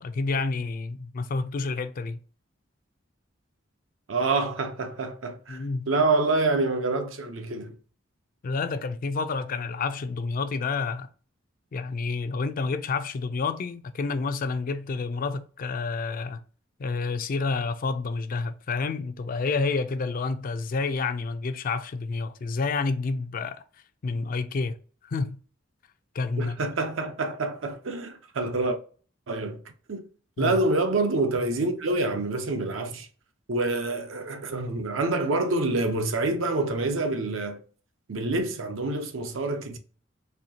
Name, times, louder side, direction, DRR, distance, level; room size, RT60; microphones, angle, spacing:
voice 1, 0.0-2.2 5.5-5.9 8.4-11.1 11.7-16.4 16.8-23.6 24.0-24.8 25.0-25.4 26.1-26.6 30.4-30.6, left 4 dB, 45° left, 0.4 m, -29 dB
voice 2, 4.1-7.8 26.4-28.8 29.3-29.6 29.9-30.1 30.4-33.1 33.5-37.6 38.1-39.8, right 2 dB, 80° right, 0.7 m, -27 dB
4.3 x 2.7 x 2.7 m
head